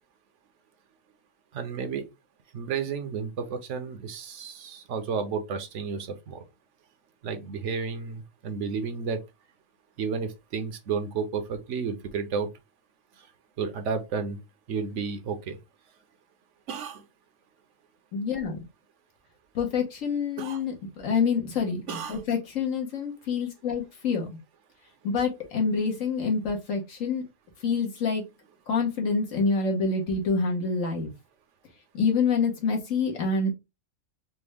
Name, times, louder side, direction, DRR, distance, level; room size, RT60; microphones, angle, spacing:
voice 1, 1.5-2.0 2.5-6.4 7.2-9.2 10.0-12.5 13.6-14.4 14.7-15.6 16.7-17.0 20.4-20.6 21.9-22.2, right 5 dB, 70° right, 1.0 m, -32 dB
voice 2, 18.1-18.6 19.5-24.3 25.0-27.2 27.6-28.2 28.7-31.1 31.9-33.5, left 5 dB, 85° left, 1.5 m, -27 dB
4.3 x 2.1 x 3.3 m
omnidirectional pair, 1.3 m